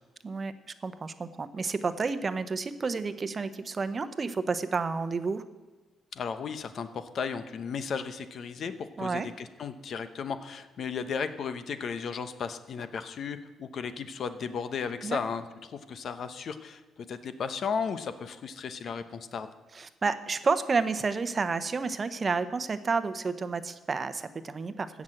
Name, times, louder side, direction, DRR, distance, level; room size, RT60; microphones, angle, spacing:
voice 1, 0.8-5.4 9.0-9.3 15.0-15.2 19.7-25.0, right 4 dB, 35° right, 12 dB, 0.8 m, -30 dB
voice 2, 6.1-19.5, left 6 dB, 60° left, 11 dB, 0.9 m, -35 dB
16.0 x 6.2 x 7.8 m, 1.2 s
cardioid pair, 90°, 0 cm